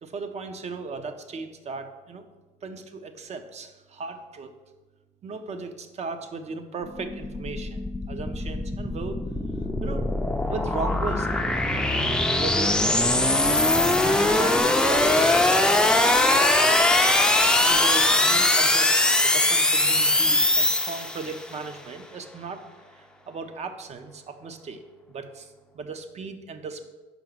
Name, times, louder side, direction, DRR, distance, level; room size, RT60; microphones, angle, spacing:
voice 1, 0.0-2.3 2.6-4.5 5.2-9.3 9.8-10.1 10.5-11.3 12.4-13.2 14.0-15.4 16.2-16.5 17.6-24.8 25.1-26.9, right 4 dB, 40° right, 8 dB, 0.7 m, -36 dB
sound 1, 6.9-21.4, left 2 dB, 5° left, 0.5 m, -21 dB
5.4 x 4.9 x 6.0 m, 1.2 s
cardioid pair, 110°, 17 cm